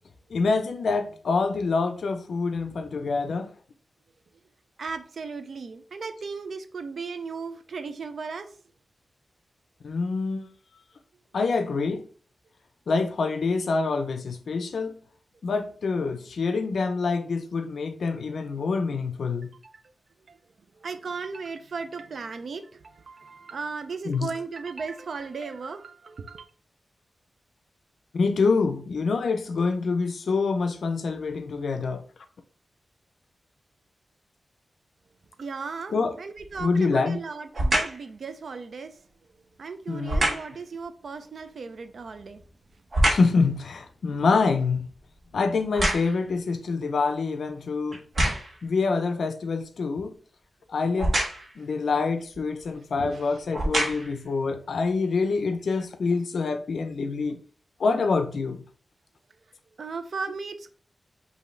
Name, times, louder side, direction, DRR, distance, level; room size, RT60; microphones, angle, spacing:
voice 1, 0.3-3.5 9.8-10.5 11.3-12.0 12.9-15.0 15.4-19.5 24.0-24.3 28.1-32.0 35.9-36.2 36.6-37.2 39.9-40.4 43.1-44.9 45.3-48.0 48.6-50.2 50.7-51.2 51.6-57.4 57.8-58.6, left 4 dB, 70° left, 0.5 m, -26 dB
voice 2, 4.8-8.5 19.6-19.8 20.3-20.4 20.8-26.5 35.4-38.9 39.6-42.4 53.0-53.3 59.8-60.7, right 4 dB, 65° right, 0.5 m, -36 dB
sound 1, 36.4-36.8 37.5-38.1 40.1-40.6 42.0-43.4 43.9-46.4 47.0-47.1 47.9-48.6 51.0-51.6 52.6-52.7 53.4-54.2 54.8-54.9, right 1 dB, 45° right, 1.3 m, -26 dB
5.4 x 2.7 x 3.2 m
wide cardioid pair, 155°, 0 cm